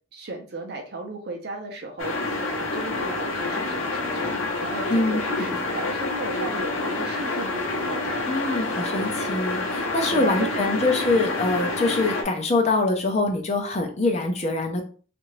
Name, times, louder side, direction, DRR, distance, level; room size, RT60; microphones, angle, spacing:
voice 1, 0.1-8.4 10.1-10.8, right 2 dB, 55° right, 1 dB, 0.6 m, -35 dB
sound 1, 2.0-12.2, left 2 dB, 80° left, 0.7 m, -28 dB
voice 2, 4.9-5.2 8.2-14.8, left 2 dB, 35° left, 3 dB, 0.6 m, -24 dB
2.7 x 2.5 x 3.1 m, 0.39 s
head